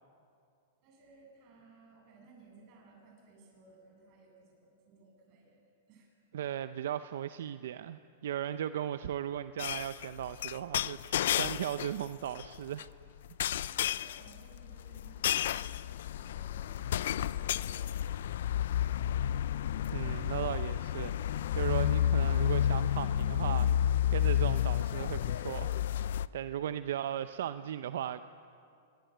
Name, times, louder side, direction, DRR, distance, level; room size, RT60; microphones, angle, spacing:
voice 1, 0.8-5.6 5.9-6.1 13.6-18.1, right 3 dB, 35° right, 0 dB, 7.7 m, -59 dB
voice 2, 6.3-12.9 19.9-21.2 21.5-25.7 26.3-28.2, right 10 dB, 70° right, 12 dB, 0.7 m, -37 dB
sound 1, 9.6-12.0 12.4-12.8 13.4-26.3, left 11 dB, 70° left, 0.6 m, -31 dB
26.0 x 22.0 x 9.3 m, 2.5 s
supercardioid pair, 155°, 0 cm